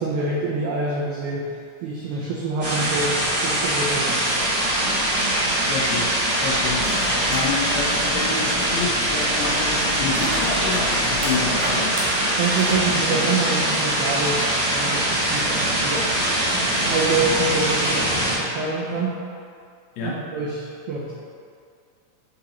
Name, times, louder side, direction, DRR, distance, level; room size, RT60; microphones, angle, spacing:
voice 1, 0.0-1.5 1.8-4.2 12.4-14.4 14.7-16.1 16.7-19.2 20.0-21.1, right 3 dB, 90° right, -5 dB, 1.3 m, -26 dB
sound 1, 2.6-18.4, right 1 dB, 30° right, 1.3 m, -22 dB
voice 2, 5.6-6.9 7.3-11.9 20.0-20.2, left 4 dB, 80° left, -2 dB, 1.7 m, -29 dB
sound 2, 6.4-11.7, left 3 dB, 60° left, 0.4 m, -36 dB
sound 3, 6.6-7.5 7.9-14.0 14.4-14.5 15.5-17.0, right 1 dB, 70° right, 1.6 m, -34 dB
4.7 x 3.8 x 2.9 m, 2.3 s
omnidirectional pair, 3.4 m